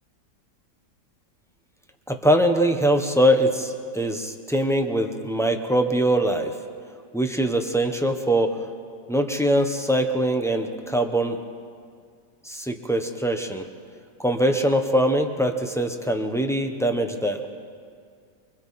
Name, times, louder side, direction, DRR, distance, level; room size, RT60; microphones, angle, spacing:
voice 1, 2.1-6.5 7.1-8.7 9.1-11.4 12.4-13.6 14.2-17.4, right 1 dB, ahead, 4 dB, 1.0 m, -22 dB
25.5 x 24.5 x 4.3 m, 2.2 s
omnidirectional pair, 1.9 m